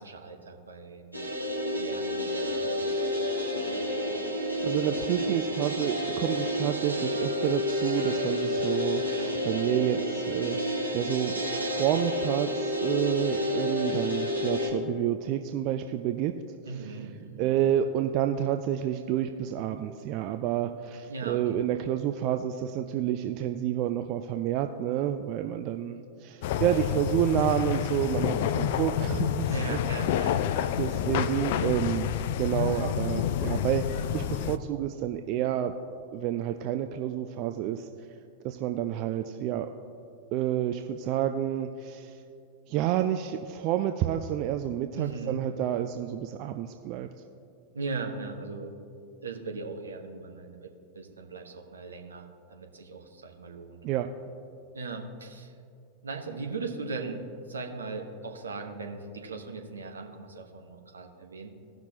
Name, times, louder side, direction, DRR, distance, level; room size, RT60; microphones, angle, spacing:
voice 1, 0.0-1.3 1.7-3.1 16.6-17.6 21.1-21.6 29.4-30.6 44.9-45.4 47.7-48.9 49.2-50.7 50.9-53.8 54.7-55.5 56.0-61.5, right 3 dB, 70° right, 3 dB, 1.0 m, -39 dB
sound 1, 1.1-14.7, left 1 dB, 90° right, 1.5 m, -30 dB
voice 2, 4.6-10.6 10.9-11.4 11.6-16.3 17.4-29.8 30.8-32.1 32.4-35.7 36.1-37.9 38.4-39.7 40.3-42.2 42.7-47.1 53.8-54.1, right 11 dB, 40° right, 7 dB, 0.4 m, -29 dB
sound 2, 26.4-34.6, left 10 dB, 50° left, 0.4 m, -29 dB
17.5 x 5.9 x 2.9 m, 2.5 s
figure-of-eight pair, 90°, 0 cm